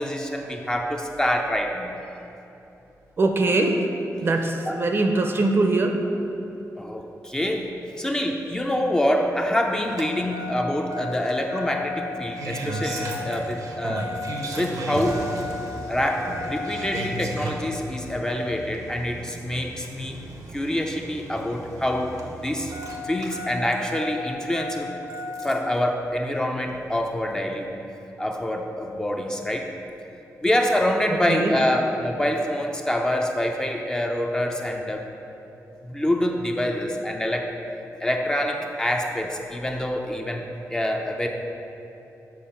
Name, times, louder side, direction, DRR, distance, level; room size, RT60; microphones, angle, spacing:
voice 1, 0.0-2.0 4.7-4.8 6.8-14.1 14.5-15.2 15.9-20.2 20.5-22.7 23.0-24.9 25.4-27.7 28.2-29.7 30.4-35.0 35.8-37.5 38.0-41.3, left 1 dB, 10° left, 2 dB, 0.5 m, -26 dB
voice 2, 3.2-3.8 4.2-6.0 31.3-31.5, right 2 dB, 40° right, 4 dB, 0.6 m, -22 dB
Engine starting, 9.8-25.8 27.0-27.1, equal, 85° right, 0.8 m, -34 dB
7.5 x 4.2 x 5.5 m, 2.9 s
wide cardioid pair, 145°, 6 cm